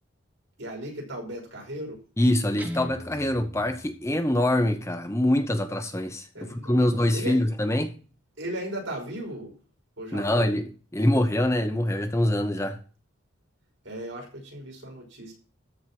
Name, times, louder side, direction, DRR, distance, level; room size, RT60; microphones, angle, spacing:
voice 1, 0.6-2.0 6.3-6.8 7.1-7.4 8.4-9.6 10.0-10.5 13.8-15.3, right 1 dB, 65° right, 5.7 m, -36 dB
voice 2, 2.2-6.3 6.7-7.9 10.1-12.8, left 1 dB, 15° left, 0.8 m, -24 dB
Guitar, 2.6-4.6, equal, 10° right, 1.1 m, -40 dB
14.0 x 4.7 x 7.5 m
head